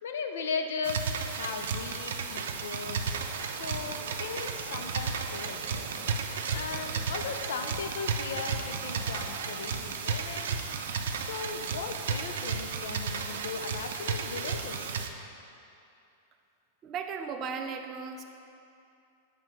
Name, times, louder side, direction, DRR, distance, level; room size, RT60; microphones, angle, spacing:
voice 1, 0.0-3.2 3.4-5.6 6.5-10.7 11.2-14.9, left 5 dB, 85° left, 5 dB, 0.5 m, -37 dB
sound 1, 0.8-15.1, right 5 dB, 80° right, 0.5 m, -34 dB
sound 2, 2.4-15.6, right 3 dB, 55° right, 0.9 m, -49 dB
voice 2, 16.8-18.2, right 6 dB, 25° right, 5 dB, 0.4 m, -36 dB
7.7 x 3.4 x 6.0 m, 2.6 s
supercardioid pair, 165°, 0 cm